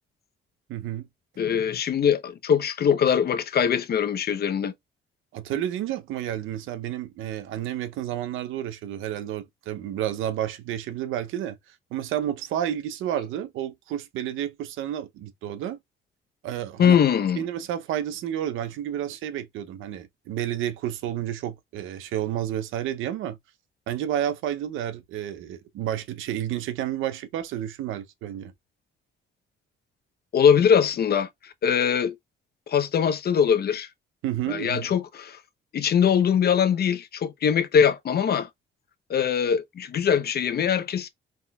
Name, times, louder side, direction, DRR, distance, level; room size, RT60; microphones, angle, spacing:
voice 1, 0.7-1.1 5.3-11.6 11.9-15.8 16.4-17.0 17.4-23.4 23.9-28.5 34.2-34.9, right 11 dB, 90° right, 0.7 m, -30 dB
voice 2, 1.4-4.7 16.8-17.4 30.3-31.3 31.6-32.2 32.7-33.9 34.5-35.4 35.7-38.5 39.1-41.1, left 7 dB, 55° left, 0.8 m, -22 dB
4.3 x 3.7 x 2.3 m
cardioid pair, 90°, 20 cm